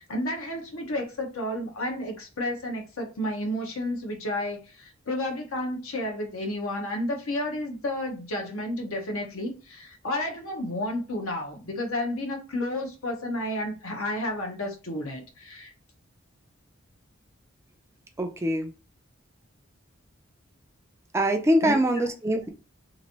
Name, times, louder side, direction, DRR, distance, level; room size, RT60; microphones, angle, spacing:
voice 1, 0.0-15.7 21.6-22.0, left 1 dB, 85° left, 0.9 m, -31 dB
voice 2, 18.2-18.7 21.1-22.5, right 1 dB, 15° right, 0.3 m, -23 dB
2.9 x 2.5 x 2.8 m
head